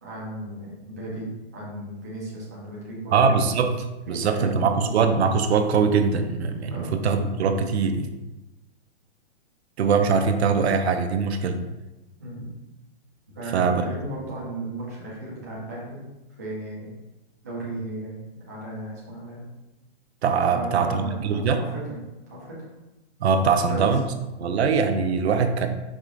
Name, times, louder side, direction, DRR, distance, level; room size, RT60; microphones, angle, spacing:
voice 1, 0.0-3.4 4.2-4.9 6.7-6.9 12.2-12.5 13.3-16.0 16.4-16.9 17.4-19.5 20.5-22.0 22.3-22.6 23.6-23.9 24.4-24.6, right 2 dB, 15° right, -7 dB, 0.3 m, -35 dB
voice 2, 3.1-8.1 9.8-11.6 13.5-13.8 20.2-21.6 23.2-24.1 24.4-25.7, right 5 dB, 70° right, 7 dB, 0.6 m, -22 dB
4.8 x 2.4 x 3.7 m, 1.0 s
hypercardioid pair, 175°, 33 cm